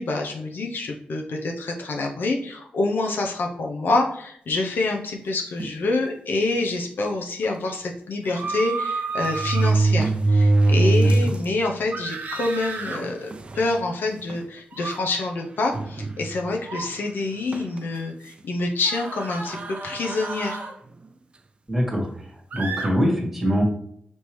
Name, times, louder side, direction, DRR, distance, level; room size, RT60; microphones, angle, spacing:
voice 1, 0.0-20.6, left 2 dB, 75° left, 1 dB, 0.6 m, -27 dB
sound 1, 5.6-5.9 6.6-6.7 7.0-7.1 8.4-8.5 9.2-11.5 11.9-12.0 12.8-12.9 13.3-13.7 14.3-14.4 15.7-16.5 17.5-17.8, right 2 dB, 30° right, 0.3 m, -21 dB
sound 2, 8.2-9.8 11.9-13.0 14.7-15.0 16.6-16.9 18.8-20.7 22.5-22.9, right 4 dB, 55° right, 0.7 m, -32 dB
voice 2, 21.7-22.1 22.5-23.6, equal, 10° right, -2 dB, 1.5 m, -23 dB
5.2 x 2.8 x 3.1 m, 0.66 s
wide cardioid pair, 100°, 3 cm